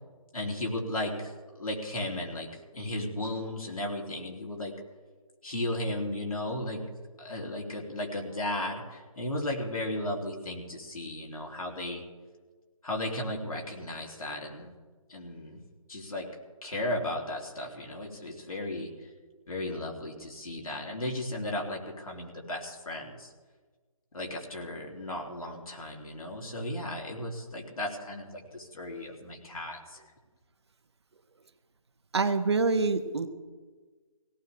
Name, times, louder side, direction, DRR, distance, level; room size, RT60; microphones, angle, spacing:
voice 1, 0.3-1.3 1.6-2.5 2.7-4.7 5.4-6.8 7.2-12.0 12.8-14.7 15.1-15.6 15.9-16.3 16.6-18.9 19.5-23.3 24.1-30.0, left 1 dB, 80° left, -1 dB, 3.3 m, -35 dB
voice 2, 32.1-33.3, right 4 dB, 50° right, 9 dB, 1.0 m, -26 dB
17.0 x 16.5 x 3.5 m, 1.4 s
figure-of-eight pair, 175°, 18 cm